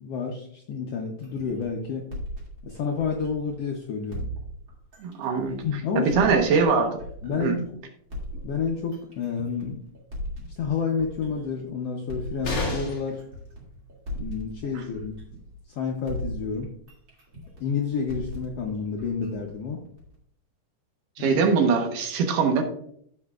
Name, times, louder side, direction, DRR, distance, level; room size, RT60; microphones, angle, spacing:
voice 1, 0.0-2.1 2.6-4.3 5.6-6.1 7.2-7.7 8.4-9.8 10.6-13.2 14.1-15.1 15.7-16.7 17.6-19.8 21.2-21.4, left 5 dB, 75° left, 1 dB, 1.5 m, -29 dB
sound 1, 1.2-3.7 4.1-7.6 8.1-11.6 12.1-15.8 16.1-20.2, equal, 40° right, 2.8 m, -39 dB
voice 2, 5.0-5.6 6.0-7.0 7.3-7.6 21.2-22.6, right 5 dB, 80° right, 4 dB, 2.7 m, -22 dB
sound 2, 12.4-13.2 15.1-15.2 15.5-15.6, left 2 dB, 45° left, 2.7 m, -29 dB
15.5 x 5.5 x 2.4 m, 0.67 s
omnidirectional pair, 3.8 m